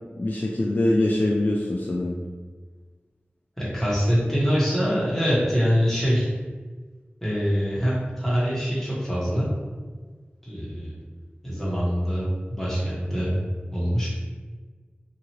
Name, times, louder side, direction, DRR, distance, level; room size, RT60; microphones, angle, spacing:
voice 1, 0.2-2.2, left 1 dB, 45° left, -2 dB, 0.3 m, -23 dB
voice 2, 3.6-6.3 7.2-9.5 10.4-10.9 11.4-13.4 13.7-14.1, equal, 10° left, -8 dB, 1.2 m, -24 dB
2.8 x 2.5 x 2.9 m, 1.4 s
wide cardioid pair, 60°, 4 cm